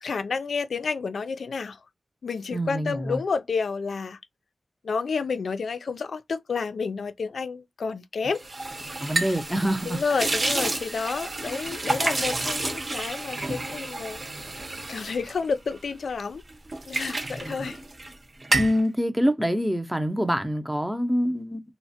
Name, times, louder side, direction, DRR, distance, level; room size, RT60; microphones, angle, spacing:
voice 1, 0.0-1.8 2.2-4.2 4.8-8.4 9.1-9.3 9.9-14.2 14.6-16.4 16.8-17.8, left 5 dB, 85° left, 0.3 m, -30 dB
voice 2, 2.5-3.2 9.0-10.3 17.3-17.7 18.6-21.6, equal, 5° right, 0.5 m, -26 dB
sound 1, 8.3-16.1 16.5-18.2 18.4-18.8, right 2 dB, 40° right, 0.7 m, -30 dB
3.0 x 2.1 x 2.7 m
wide cardioid pair, 100°, 0 cm